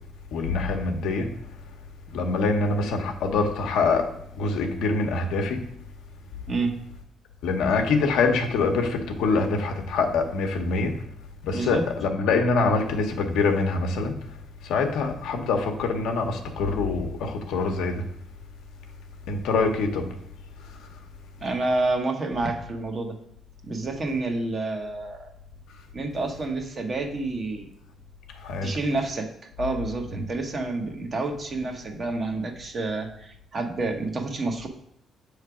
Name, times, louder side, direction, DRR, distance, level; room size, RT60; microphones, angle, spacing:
voice 1, 0.3-1.3 2.1-4.1 4.4-5.6 7.4-11.0 11.4-14.1 14.6-18.0 19.3-20.1 28.4-28.7 30.2-30.3, left 4 dB, 90° left, 4 dB, 0.8 m, -24 dB
voice 2, 11.5-11.8 21.4-23.1 23.6-25.3 25.9-27.7 28.6-29.3 29.6-34.7, right 2 dB, 40° right, 4 dB, 0.9 m, -28 dB
6.7 x 3.2 x 4.8 m, 0.71 s
cardioid pair, 90°, 0 cm